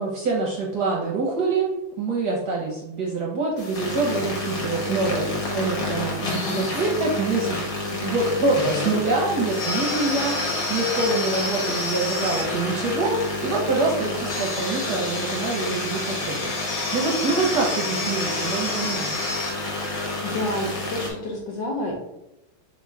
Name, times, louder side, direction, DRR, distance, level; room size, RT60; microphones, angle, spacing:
voice 1, 0.0-1.7 2.0-7.6 7.8-19.2, right 3 dB, 65° right, -3 dB, 1.1 m, -25 dB
sound 1, 3.6-21.1, left 2 dB, 50° left, 1.2 m, -28 dB
voice 2, 6.3-6.6 20.2-21.9, left 1 dB, 65° left, 0 dB, 1.2 m, -29 dB
3.6 x 2.5 x 4.5 m, 0.87 s
omnidirectional pair, 2.4 m